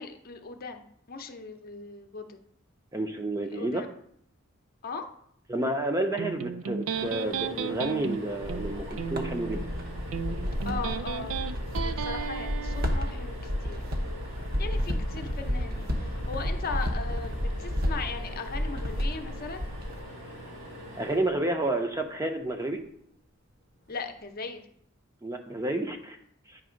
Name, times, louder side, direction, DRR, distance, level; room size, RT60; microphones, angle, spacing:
voice 1, 0.0-2.4 3.5-3.9 4.8-5.0 10.7-11.4 11.8-13.3 13.6-13.8 14.6-19.6 23.9-24.6, left 4 dB, 45° left, 6 dB, 0.7 m, -38 dB
voice 2, 2.9-3.8 5.5-9.6 21.0-22.8 25.2-26.2 26.5-26.6, right 1 dB, 15° right, 5 dB, 0.6 m, -30 dB
Electric guitar, 6.2-13.2, right 6 dB, 85° right, 0.4 m, -35 dB
sound 1, 6.9-22.1 23.8-24.0 24.3-24.4, left 1 dB, 65° right, 2.3 m, -44 dB
sound 2, 8.4-20.0, equal, 50° right, 0.9 m, -32 dB
9.3 x 3.4 x 5.1 m, 0.68 s
head